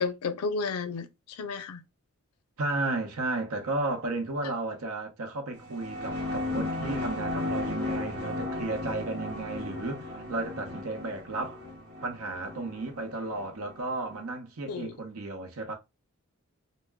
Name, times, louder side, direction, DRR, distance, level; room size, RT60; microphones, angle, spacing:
voice 1, 0.0-1.8 14.7-14.9, left 4 dB, 85° left, 0.4 m, -32 dB
voice 2, 2.6-11.6 12.0-15.7, right 2 dB, 75° right, 0.7 m, -33 dB
sound 1, 5.6-14.2, left 2 dB, 50° right, 1.0 m, -35 dB
2.1 x 2.0 x 3.4 m
head